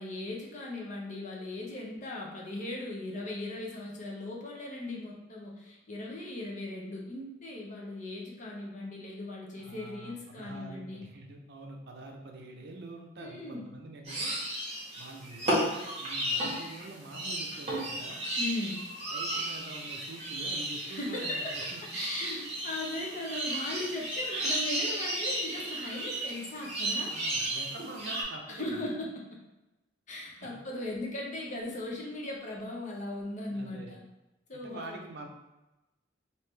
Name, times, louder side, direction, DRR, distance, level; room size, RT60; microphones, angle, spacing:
voice 1, 0.0-11.0 13.2-13.6 18.4-18.8 20.9-21.5 21.9-27.1 28.5-29.4 30.1-34.0 34.5-35.0, left 2 dB, 40° left, -2 dB, 0.7 m, -38 dB
voice 2, 9.5-14.5 15.0-18.2 19.1-21.8 27.1-28.7 30.3-30.6 33.5-34.0 34.5-35.3, right 2 dB, 60° right, 2 dB, 0.5 m, -46 dB
sound 1, 14.0-28.2, right 1 dB, 30° right, 1.2 m, -34 dB
3.5 x 2.7 x 3.2 m, 1.0 s
head